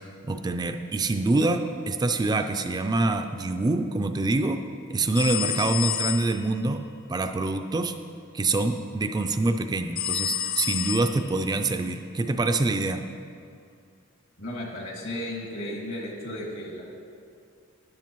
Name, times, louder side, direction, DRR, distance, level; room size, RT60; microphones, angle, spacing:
voice 1, 0.3-4.6 4.9-8.0 8.3-13.1, right 2 dB, 20° right, 7 dB, 0.3 m, -25 dB
sound 1, 5.2-6.5 10.0-11.5, left 10 dB, 45° left, 0.5 m, -29 dB
voice 2, 14.4-16.9, left 1 dB, 65° left, -1 dB, 2.1 m, -34 dB
13.0 x 10.0 x 3.0 m, 2.4 s
head